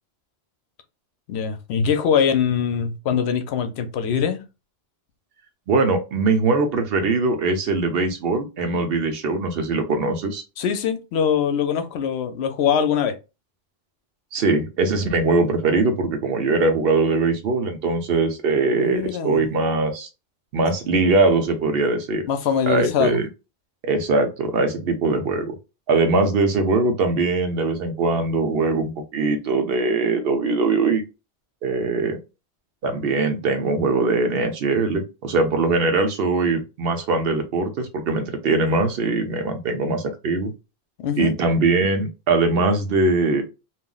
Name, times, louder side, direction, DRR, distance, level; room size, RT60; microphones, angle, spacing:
voice 1, 1.3-4.4 10.6-13.2 18.7-19.5 22.3-23.2 41.0-41.3, left 7 dB, 85° left, 0.8 m, -22 dB
voice 2, 5.7-10.4 14.3-20.1 20.5-22.2 22.7-23.2 23.8-25.5 25.9-31.0 31.6-32.2 32.8-40.5 41.2-43.4, right 3 dB, 70° right, 0.8 m, -21 dB
2.4 x 2.0 x 3.7 m
omnidirectional pair, 1.1 m